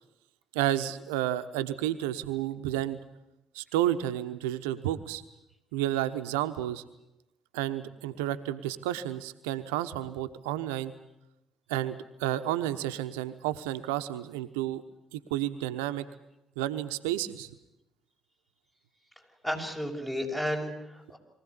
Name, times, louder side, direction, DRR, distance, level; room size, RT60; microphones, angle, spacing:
voice 1, 0.5-3.0 3.5-5.2 5.7-6.8 7.5-10.9 11.7-14.8 15.1-16.0 16.6-17.5, right 13 dB, 80° right, 10 dB, 1.0 m, -31 dB
voice 2, 19.4-21.2, equal, 15° left, 2 dB, 6.2 m, -32 dB
23.0 x 16.0 x 10.0 m, 0.91 s
hypercardioid pair, 50°, 0 cm